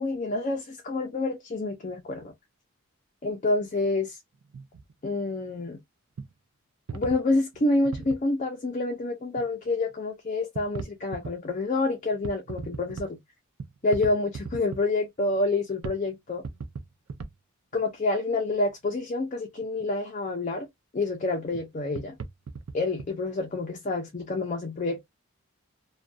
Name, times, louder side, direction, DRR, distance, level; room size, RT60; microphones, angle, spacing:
voice 1, 0.0-2.3 3.2-4.2 5.0-5.8 6.9-13.2 13.8-16.4 17.7-20.7 20.9-22.2 22.7-25.0, left 2 dB, 35° left, 0.5 m, -28 dB
sound 1, 4.4-4.9 5.4-5.5 6.2-6.3 6.9-8.2 9.4-9.5 9.9-10.0 10.5-11.3 12.1-13.1 13.6-14.9 15.5-15.6 15.8-16.0 16.3-17.3 17.7-17.8 19.6-19.8 21.5-21.6 21.9-23.1, right 4 dB, 75° right, 0.4 m, -38 dB
2.6 x 2.2 x 2.2 m
head